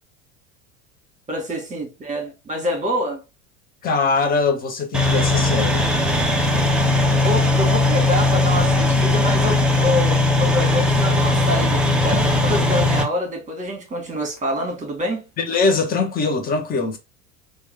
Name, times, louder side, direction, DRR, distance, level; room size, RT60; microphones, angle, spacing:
voice 1, 1.3-3.2 7.1-15.2, equal, 20° right, 1.4 m, -26 dB
voice 2, 3.8-5.8 12.1-12.2 15.4-17.0, left 4 dB, 20° left, 0.7 m, -22 dB
sound 1, 4.9-13.0, left 2 dB, 5° right, 0.3 m, -18 dB
3.0 x 2.3 x 3.3 m
figure-of-eight pair, 75°, 41 cm